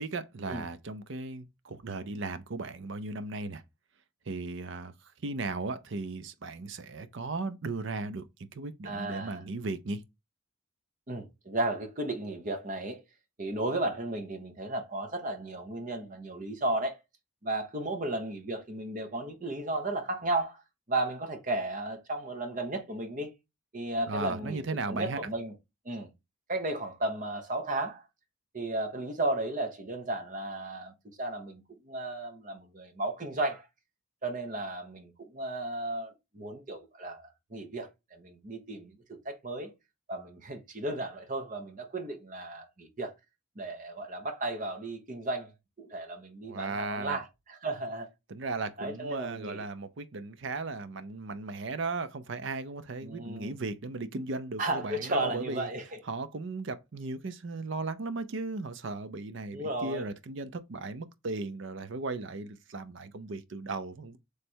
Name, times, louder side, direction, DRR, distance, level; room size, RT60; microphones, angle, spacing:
voice 1, 0.0-3.6 4.3-8.2 8.5-10.0 24.1-25.2 46.4-47.2 48.3-55.7 56.0-64.2, right 3 dB, 60° right, 0.5 m, -36 dB
voice 2, 8.8-9.4 11.1-13.0 13.4-17.0 17.4-20.6 20.9-23.3 23.7-25.5 25.8-26.1 26.5-28.0 28.5-33.7 34.2-39.7 40.1-43.1 43.6-45.5 45.8-48.1 48.8-49.7 53.0-53.5 54.6-56.0 59.5-60.1, right 2 dB, 40° right, 1.0 m, -34 dB
3.3 x 3.2 x 4.4 m
head